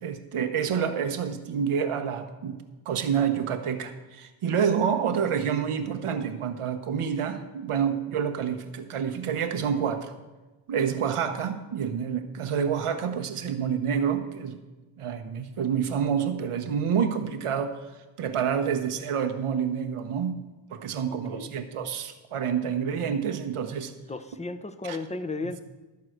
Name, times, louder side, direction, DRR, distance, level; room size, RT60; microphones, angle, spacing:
voice 1, 0.0-2.6 2.9-10.1 10.7-14.6 15.0-17.8 18.2-20.3 20.7-23.9 24.8-25.0, right 7 dB, 85° right, 7 dB, 1.1 m, -28 dB
voice 2, 21.1-21.5 24.1-25.6, left 3 dB, 15° left, 10 dB, 0.7 m, -35 dB
13.0 x 4.7 x 7.8 m, 1.2 s
cardioid pair, 75°, 49 cm